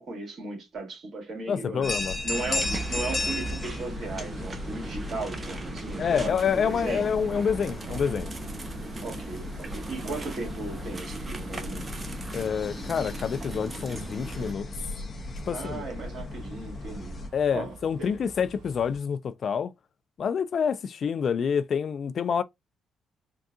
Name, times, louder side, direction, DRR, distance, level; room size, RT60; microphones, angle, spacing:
voice 1, 0.0-2.0 2.2-7.1 9.0-11.9 15.5-17.2 17.5-18.1, right 3 dB, 55° right, 2.0 m, -36 dB
voice 2, 1.5-2.2 6.0-8.3 12.3-14.7 15.5-15.8 17.3-19.7 20.2-22.4, left 7 dB, 55° left, 0.3 m, -27 dB
sound 1, 1.8-17.3, left 2 dB, 35° left, 0.7 m, -36 dB
sound 2, 2.3-14.5, right 2 dB, 30° right, 0.7 m, -39 dB
sound 3, 2.4-19.0, right 4 dB, 75° right, 1.0 m, -48 dB
3.7 x 2.3 x 2.4 m
cardioid pair, 90°, 0 cm